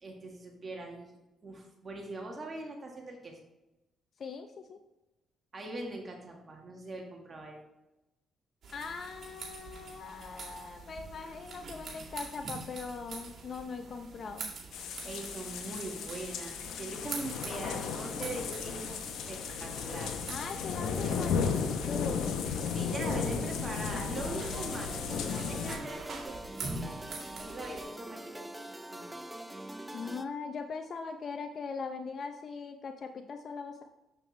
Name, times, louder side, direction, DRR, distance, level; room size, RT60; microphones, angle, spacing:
voice 1, 0.0-1.2 1.4-3.4 5.5-7.6 15.0-19.0 19.3-20.2 22.7-25.1 25.5-27.0 27.4-29.1, right 2 dB, 35° right, 1 dB, 1.6 m, -42 dB
voice 2, 4.2-4.8 8.7-14.5 20.3-22.5 23.1-23.2 29.9-33.8, left 5 dB, 50° left, 6 dB, 0.5 m, -40 dB
sound 1, 8.6-27.8, right 3 dB, 55° right, 2.2 m, -45 dB
sound 2, 14.7-25.8, left 6 dB, 80° left, 0.8 m, -34 dB
sound 3, 24.1-30.3, right 1 dB, 5° right, 0.6 m, -43 dB
7.5 x 6.4 x 3.2 m, 0.99 s
cardioid pair, 90°, 0 cm